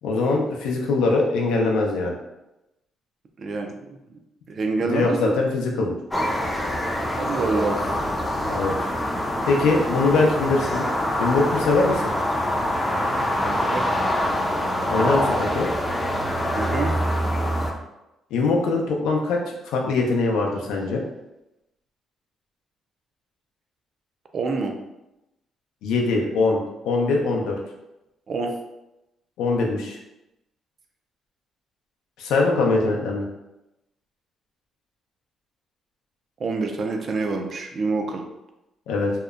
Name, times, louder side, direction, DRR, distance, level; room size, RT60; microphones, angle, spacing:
voice 1, 0.0-2.2 4.8-6.0 8.5-8.7 9.5-10.8 11.2-12.1 14.9-15.7 18.3-21.0 25.8-27.6 29.4-30.0 32.2-33.3 38.9-39.1, left 3 dB, 90° left, 0 dB, 0.4 m, -22 dB
voice 2, 3.4-4.2 4.5-5.4 7.2-7.8 13.4-13.9 16.6-16.9 24.3-24.7 28.3-28.5 36.4-38.2, right 3 dB, 50° right, 3 dB, 0.4 m, -27 dB
sound 1, 6.1-17.7, equal, 15° left, 0.4 m, -25 dB
2.7 x 2.1 x 2.3 m, 0.94 s
cardioid pair, 90°, 0 cm